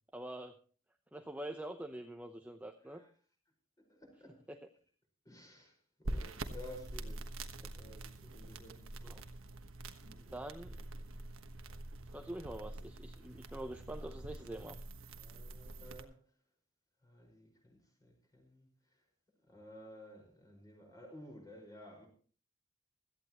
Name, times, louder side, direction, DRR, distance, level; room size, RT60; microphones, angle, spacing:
voice 1, 0.1-0.6 1.1-3.0 4.5-4.6 7.6-7.7 9.0-9.2 10.2-10.8 12.1-14.8, right 1 dB, 5° right, 0.8 m, -45 dB
voice 2, 2.8-3.1 3.9-4.4 5.3-7.3 7.7-9.0 10.0-10.1 13.4-13.7 15.2-16.2 17.0-19.0 19.5-22.1, left 1 dB, 15° left, 5.3 m, -54 dB
sound 1, 6.0-16.0, right 2 dB, 70° right, 1.3 m, -45 dB
17.0 x 13.5 x 3.0 m
head